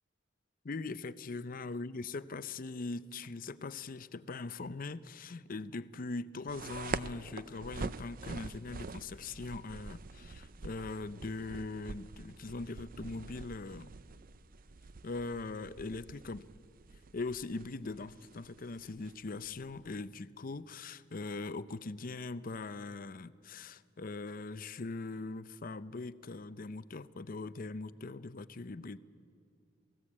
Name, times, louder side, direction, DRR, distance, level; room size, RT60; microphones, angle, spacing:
voice 1, 0.6-13.9 15.0-16.4 17.1-29.0, left 3 dB, 45° left, 15 dB, 0.6 m, -41 dB
sound 1, 6.5-20.0, right 4 dB, 50° right, 0.6 m, -46 dB
27.5 x 18.0 x 8.6 m, 2.4 s
head